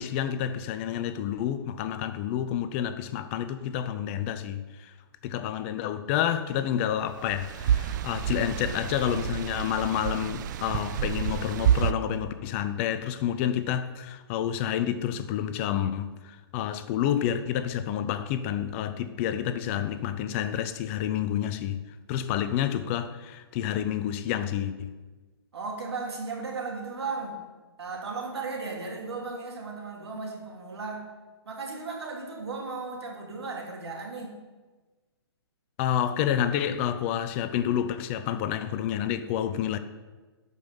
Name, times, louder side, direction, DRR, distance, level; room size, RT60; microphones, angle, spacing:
voice 1, 0.0-4.9 5.2-21.8 22.1-24.9 35.8-39.8, left 10 dB, 30° left, 0.5 m, -29 dB
sound 1, 7.2-11.9, right 9 dB, 45° right, 0.5 m, -28 dB
voice 2, 25.5-27.4 27.8-31.0 31.4-34.3, right 4 dB, 75° right, 2.8 m, -35 dB
12.5 x 5.5 x 5.4 m
hypercardioid pair, 135°, 14 cm